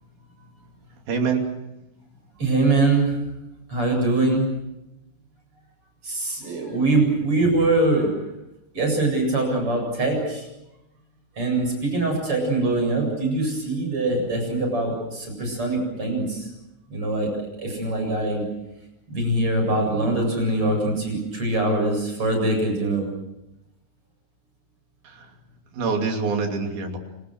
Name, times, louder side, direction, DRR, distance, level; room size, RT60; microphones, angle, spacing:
voice 1, 1.1-1.5 25.0-25.3 25.7-27.0, right 5 dB, 60° right, 3 dB, 4.6 m, -25 dB
voice 2, 2.4-3.2 3.7-4.5 6.0-8.1 8.7-10.5 11.4-16.5 16.9-17.3 17.6-18.4 19.1-23.1, right 2 dB, 30° right, 2 dB, 8.6 m, -23 dB
28.5 x 26.5 x 6.5 m, 0.91 s
omnidirectional pair, 4.9 m